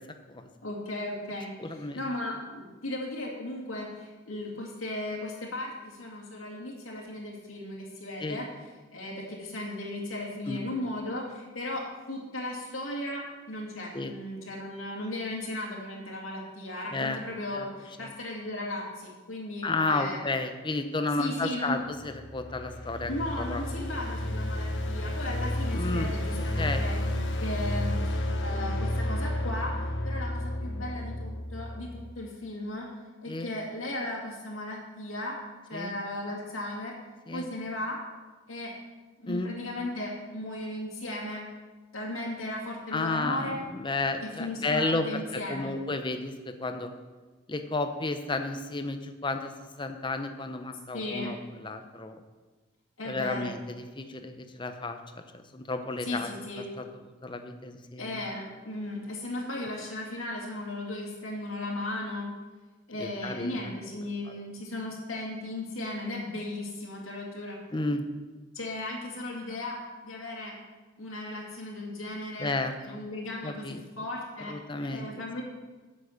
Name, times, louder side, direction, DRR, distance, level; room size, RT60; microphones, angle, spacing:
voice 1, 0.6-8.5 8.9-11.8 12.1-20.2 21.2-21.8 23.1-26.9 27.4-29.7 30.0-32.9 33.2-35.4 35.7-36.9 37.3-38.0 38.5-38.7 39.2-41.5 41.9-43.6 44.4-45.7 50.9-51.3 53.0-53.5 56.0-56.6 58.0-62.3 62.9-67.6 68.5-69.8 70.0-70.6 71.0-72.5 72.8-75.4, left 1 dB, 85° left, -3 dB, 2.3 m, -36 dB
voice 2, 1.6-2.0 8.2-8.4 10.5-10.7 13.9-14.1 16.9-17.2 17.5-17.7 18.0-18.1 19.6-23.1 23.4-23.6 25.7-26.1 26.6-26.8 33.3-33.5 35.7-35.9 37.3-37.5 39.3-39.5 42.9-46.9 47.5-52.2 53.1-55.2 55.5-56.3 56.8-56.9 57.2-58.2 59.6-59.7 63.0-63.7 67.7-68.1 72.4-73.0 73.4-73.8 74.5-75.1, left 2 dB, 25° left, 7 dB, 0.7 m, -32 dB
sound 1, 21.9-32.1, left 1 dB, 60° left, 1.2 m, -31 dB
8.2 x 7.7 x 6.4 m, 1.3 s
head